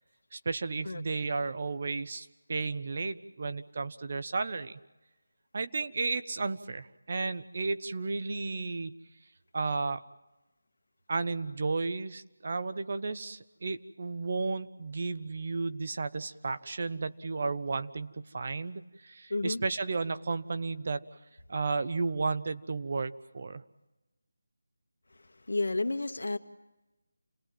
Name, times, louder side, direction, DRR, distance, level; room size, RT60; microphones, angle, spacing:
voice 1, 0.3-4.8 5.5-8.9 9.5-10.0 11.1-21.1 21.5-23.6, right 3 dB, 45° right, 12 dB, 1.0 m, -33 dB
voice 2, 19.3-19.6 25.2-26.4, left 2 dB, 85° left, 8 dB, 1.7 m, -31 dB
29.0 x 18.5 x 7.6 m, 1.1 s
figure-of-eight pair, 170°, 0 cm